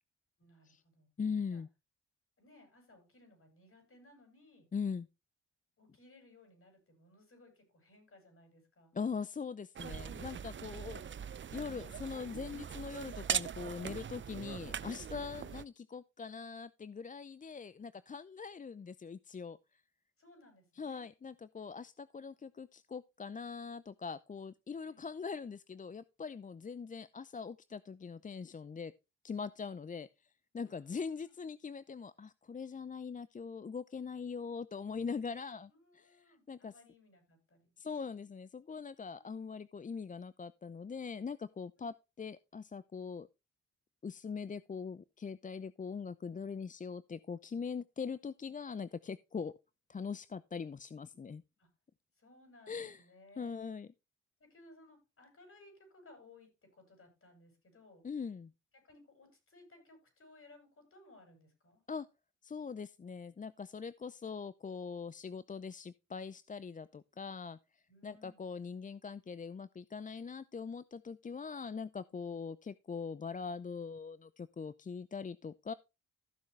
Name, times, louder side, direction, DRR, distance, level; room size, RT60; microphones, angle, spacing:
voice 1, 0.4-1.1 1.5-1.6 2.4-4.7 5.8-8.9 17.9-18.0 20.2-21.1 24.8-25.0 30.7-31.4 35.7-37.7 39.1-39.3 41.8-41.9 51.6-51.7 52.2-53.6 54.4-58.1 58.7-61.8 67.9-68.4, left 2 dB, 45° left, 6.9 m, -61 dB
voice 2, 1.2-1.7 4.7-5.1 8.9-11.0 11.5-19.8 20.8-28.9 29.2-30.1 30.5-36.7 37.8-43.3 44.0-49.5 49.9-51.4 52.7-53.0 53.4-53.9 58.0-58.5 61.9-62.1 62.4-75.7, left 5 dB, 25° left, 0.5 m, -42 dB
sound 1, 9.8-15.6, right 8 dB, 40° right, 0.6 m, -41 dB
14.5 x 6.5 x 3.2 m
supercardioid pair, 55°, 30 cm